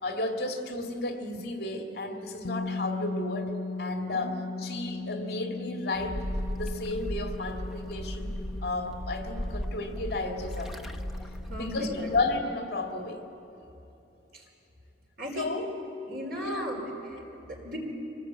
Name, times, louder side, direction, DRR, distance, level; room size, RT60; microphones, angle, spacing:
voice 1, 0.0-3.5 3.8-6.2 6.5-8.3 8.6-10.9 11.5-13.2 15.3-15.7 16.4-16.7, left 2 dB, 60° left, 3 dB, 2.3 m, -33 dB
sound 1, 2.4-12.2, left 3 dB, 85° left, 1.2 m, -39 dB
sound 2, 5.9-12.4, equal, ahead, 0.9 m, -36 dB
voice 2, 11.5-12.1 14.3-14.4 15.2-15.6 16.1-17.8, equal, 55° right, -1 dB, 4.8 m, -36 dB
25.0 x 19.0 x 9.1 m, 2.9 s
head